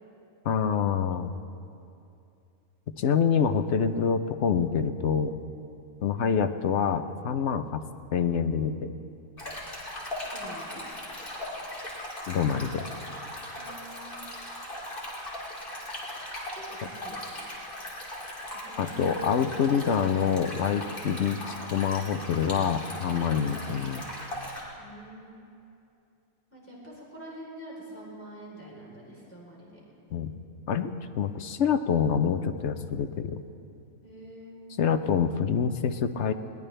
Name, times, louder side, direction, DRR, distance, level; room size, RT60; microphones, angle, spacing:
voice 1, 0.4-1.3 3.0-5.3 6.0-7.8 8.1-8.9 12.3-12.9 18.8-24.0 30.1-30.3 30.7-33.4 34.8-36.3, left 7 dB, 60° left, 9 dB, 0.9 m, -26 dB
Stream, 9.4-24.6, left 1 dB, 40° left, 3.1 m, -39 dB
voice 2, 10.2-10.8 13.5-14.2 16.5-17.2 18.5-19.2 23.4-23.8 24.8-25.4 26.5-29.8 34.0-34.6, right 1 dB, 10° left, -5 dB, 3.7 m, -46 dB
21.5 x 19.0 x 3.4 m, 2.6 s
omnidirectional pair, 1.5 m